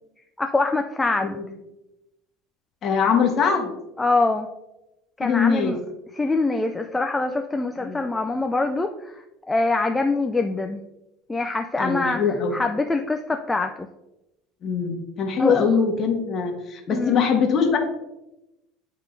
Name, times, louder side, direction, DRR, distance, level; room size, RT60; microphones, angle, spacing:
voice 1, 0.4-1.4 4.0-4.5 5.2-5.8 6.1-9.2 9.5-10.8 11.3-12.2 12.5-13.9 15.4-15.7 16.9-17.2, left 3 dB, 10° left, 5 dB, 0.3 m, -24 dB
voice 2, 2.8-3.7 5.2-5.7 7.8-8.0 11.8-12.6 14.6-17.8, left 6 dB, 40° left, 2 dB, 1.3 m, -22 dB
9.9 x 3.6 x 2.6 m, 0.94 s
supercardioid pair, 135°, 0 cm